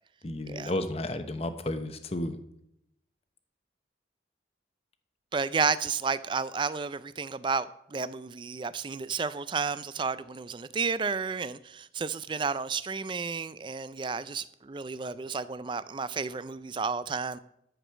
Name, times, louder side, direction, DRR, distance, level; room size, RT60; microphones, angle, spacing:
voice 1, 0.2-2.4, left 1 dB, 35° left, 0.8 m, -32 dB
voice 2, 5.3-17.4, right 5 dB, 25° right, 0.4 m, -32 dB
13.0 x 5.0 x 6.3 m
head